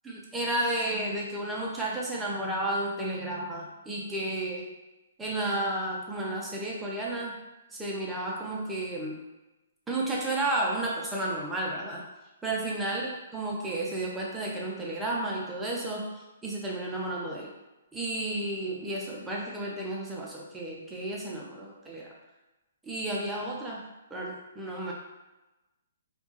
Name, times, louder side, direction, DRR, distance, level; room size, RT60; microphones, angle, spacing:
voice 1, 0.0-4.7 5.2-7.4 7.7-9.2 9.9-12.0 12.4-17.5 17.9-22.1 22.8-24.9, right 1 dB, 5° right, -4 dB, 0.4 m, -32 dB
2.2 x 2.2 x 2.9 m, 1.0 s
hypercardioid pair, 160°, 0 cm